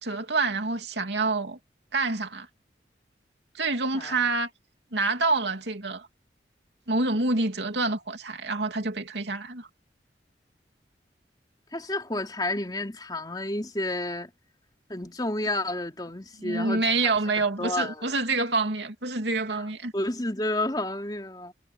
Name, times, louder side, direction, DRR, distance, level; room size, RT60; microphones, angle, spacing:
voice 1, 0.0-1.6 1.9-2.5 3.5-4.5 4.9-6.1 6.9-9.7 16.4-19.9, right 3 dB, 80° right, 2.8 m, -27 dB
voice 2, 11.7-14.3 14.9-17.1 17.4-18.1 19.5-19.7 19.9-21.5, left 1 dB, 25° left, 3.6 m, -31 dB
head